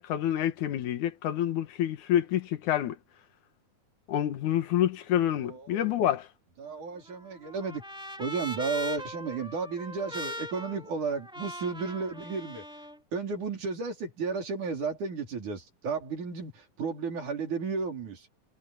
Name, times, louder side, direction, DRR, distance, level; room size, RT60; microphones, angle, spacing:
voice 1, 0.0-3.0 4.1-6.3, left 11 dB, 85° left, 2.8 m, -27 dB
voice 2, 5.4-6.0 6.6-7.8 8.2-12.6 13.1-18.3, right 4 dB, 80° right, 6.1 m, -33 dB
Trumpet, 6.7-13.0, equal, ahead, 2.9 m, -41 dB
omnidirectional pair, 3.4 m